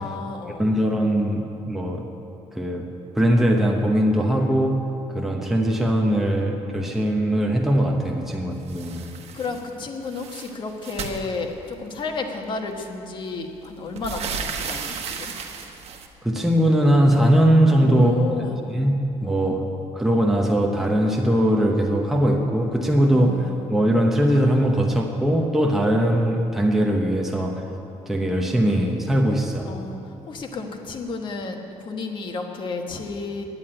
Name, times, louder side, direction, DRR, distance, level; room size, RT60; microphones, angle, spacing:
voice 1, 0.0-0.6 9.3-15.3 17.8-18.7 19.2-19.6 23.0-23.6 29.7-30.0 30.3-33.4, left 4 dB, 45° left, 3 dB, 1.4 m, -32 dB
voice 2, 0.6-2.1 2.5-2.9 3.2-9.1 16.2-18.1 18.7-27.6 28.1-29.7, right 1 dB, 5° right, 0 dB, 0.9 m, -20 dB
sound 1, 8.7-9.7 10.0-11.9 12.9-13.0 13.3-16.1, right 6 dB, 60° right, 1.2 m, -34 dB
10.5 x 9.5 x 8.8 m, 2.8 s
cardioid pair, 135°, 12 cm